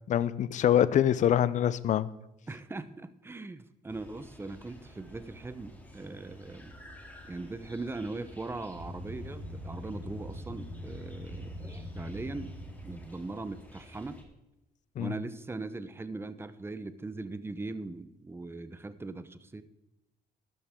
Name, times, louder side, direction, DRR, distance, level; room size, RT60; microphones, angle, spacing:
voice 1, 0.1-2.1 15.0-15.1, left 10 dB, 45° left, 17 dB, 0.6 m, -25 dB
voice 2, 2.5-6.7 7.3-12.5 12.8-14.2 15.0-19.6, right 3 dB, 15° right, 12 dB, 0.9 m, -40 dB
sound 1, 3.9-14.2, left 1 dB, 10° left, 2.8 m, -52 dB
sound 2, 8.7-13.3, left 1 dB, 55° right, 3.4 m, -42 dB
12.5 x 12.0 x 3.7 m, 0.95 s
cardioid pair, 110°, 17 cm